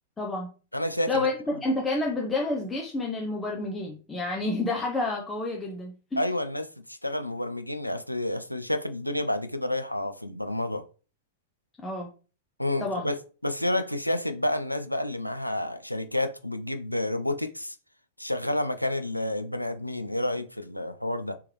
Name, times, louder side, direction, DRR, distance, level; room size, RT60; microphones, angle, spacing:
voice 1, 0.2-0.5 1.1-6.2 11.8-12.1 12.8-13.1, left 2 dB, 10° left, 0.6 m, -29 dB
voice 2, 0.7-1.3 6.2-10.8 12.6-17.8 18.2-21.3, left 1 dB, 90° left, 0.4 m, -30 dB
3.5 x 3.0 x 3.0 m
figure-of-eight pair, 100°, 0 cm